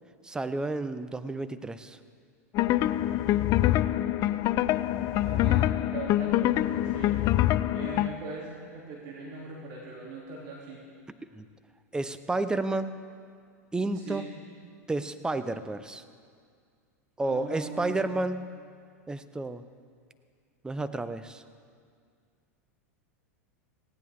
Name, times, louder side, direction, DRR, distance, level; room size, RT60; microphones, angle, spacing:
voice 1, 0.2-2.0 11.3-11.5 11.9-13.0 13.7-14.3 14.9-16.0 17.2-18.4 19.1-19.6 20.6-21.4, right 2 dB, 10° right, 11 dB, 0.7 m, -31 dB
sound 1, 2.5-8.1, left 14 dB, 40° left, 0.5 m, -25 dB
voice 2, 5.2-7.2 7.7-10.8 13.9-14.3 17.2-18.1, right 4 dB, 50° right, -4 dB, 2.9 m, -41 dB
18.5 x 16.5 x 3.7 m, 2.1 s
hypercardioid pair, 105°, 9 cm